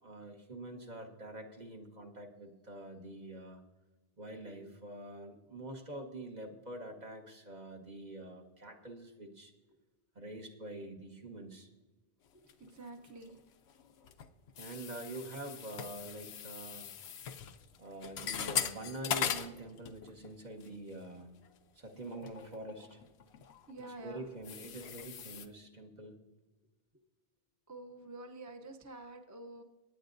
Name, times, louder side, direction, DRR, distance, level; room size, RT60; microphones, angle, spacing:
voice 1, 0.0-3.6 4.2-9.5 10.1-11.7 14.6-16.9 17.8-21.3 21.7-23.0 24.0-26.2, right 1 dB, 45° right, 3 dB, 1.3 m, -46 dB
voice 2, 12.3-13.4 23.7-24.3 27.7-29.6, right 2 dB, 20° right, 4 dB, 0.7 m, -48 dB
sound 1, 12.5-13.4 13.7-20.3 20.6-20.9 21.5-21.6 22.1-25.5, left 8 dB, 85° left, 0.9 m, -40 dB
23.0 x 9.2 x 2.6 m, 1.2 s
omnidirectional pair, 1.1 m